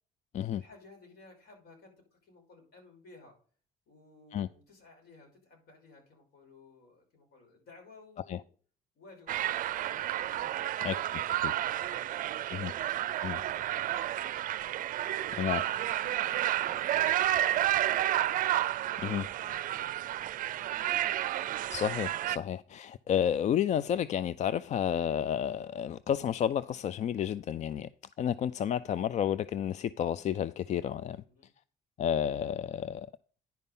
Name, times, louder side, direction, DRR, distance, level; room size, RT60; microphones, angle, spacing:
voice 1, 0.5-3.3 3.9-8.5 8.9-12.9 13.7-14.3 15.1-18.1 19.0-20.7 31.3-31.5, left 3 dB, 65° left, 5.6 m, -57 dB
sound 1, 9.3-22.4, right 13 dB, 55° right, 0.5 m, -31 dB
voice 2, 21.7-27.9 28.2-31.2 32.0-33.1, left 9 dB, 45° left, 0.4 m, -31 dB
10.5 x 5.5 x 5.4 m
cardioid pair, 110°, 17 cm